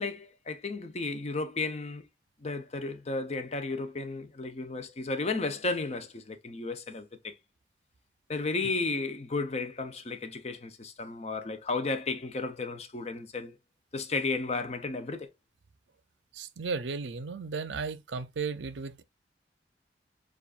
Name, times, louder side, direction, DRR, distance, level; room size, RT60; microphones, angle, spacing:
voice 1, 0.0-2.0 2.4-7.3 8.3-13.6 13.9-15.3, left 3 dB, 35° left, 0.6 m, -33 dB
voice 2, 16.3-19.0, right 4 dB, 80° right, 0.6 m, -35 dB
7.2 x 2.4 x 2.4 m
head